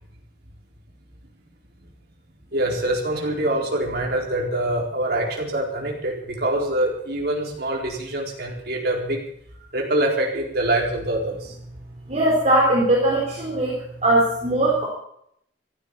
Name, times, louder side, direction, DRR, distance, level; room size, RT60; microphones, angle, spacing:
voice 1, 2.5-9.2 9.7-11.5, right 1 dB, 55° right, 0 dB, 4.2 m, -24 dB
voice 2, 12.1-13.7 14.0-14.9, right 1 dB, 35° right, -3 dB, 3.8 m, -19 dB
14.5 x 12.5 x 7.1 m, 0.71 s
head